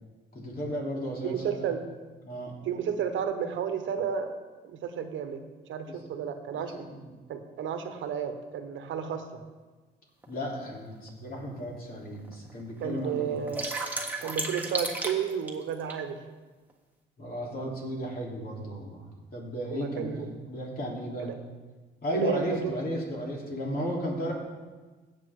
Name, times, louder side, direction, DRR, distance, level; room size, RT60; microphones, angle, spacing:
voice 1, 0.3-1.7 2.2-2.6 5.9-6.0 6.5-7.1 10.3-13.4 17.2-21.3 22.0-24.3, equal, 50° left, -3 dB, 3.5 m, -34 dB
voice 2, 1.2-1.8 2.6-4.3 4.6-5.4 5.7-6.9 7.3-9.4 12.8-13.6 14.2-16.2 19.7-20.3 21.2-21.3 22.1-22.8, right 8 dB, 75° right, 8 dB, 1.1 m, -32 dB
sound 1, 10.2-10.3 11.1-11.2 11.6-11.7 11.9-12.5 12.9-16.0, right 2 dB, 10° right, 1.5 m, -33 dB
16.0 x 7.3 x 3.8 m, 1.3 s
cardioid pair, 90°, 20 cm